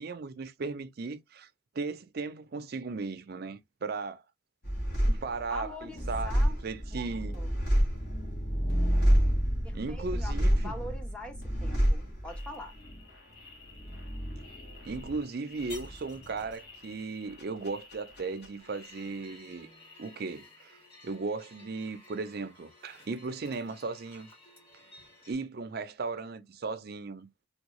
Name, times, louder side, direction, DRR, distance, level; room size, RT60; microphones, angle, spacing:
voice 1, 0.0-1.5 1.7-4.2 5.1-7.4 9.7-10.7 14.8-19.7 20.0-24.3 25.3-27.3, right 4 dB, 50° right, 0.5 m, -36 dB
sound 1, 4.6-19.5 19.8-20.6, equal, 55° left, 1.5 m, -30 dB
voice 2, 5.5-6.6 6.9-7.0 7.3-7.5 9.6-12.8, left 1 dB, 5° left, 0.6 m, -43 dB
sound 2, 18.6-25.3, left 1 dB, 25° left, 2.4 m, -56 dB
3.5 x 2.3 x 3.0 m
head